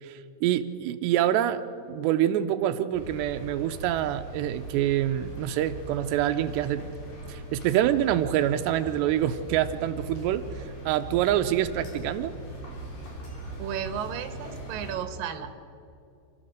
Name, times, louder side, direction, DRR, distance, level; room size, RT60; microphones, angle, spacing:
voice 1, 0.0-7.0 7.3-12.3, right 11 dB, 85° right, 8 dB, 2.9 m, -26 dB
sound 1, 2.9-15.0, right 1 dB, 45° left, 4.7 m, -40 dB
voice 2, 13.6-15.5, right 8 dB, 65° right, 7 dB, 2.8 m, -33 dB
29.0 x 14.0 x 6.5 m, 2.6 s
omnidirectional pair, 4.8 m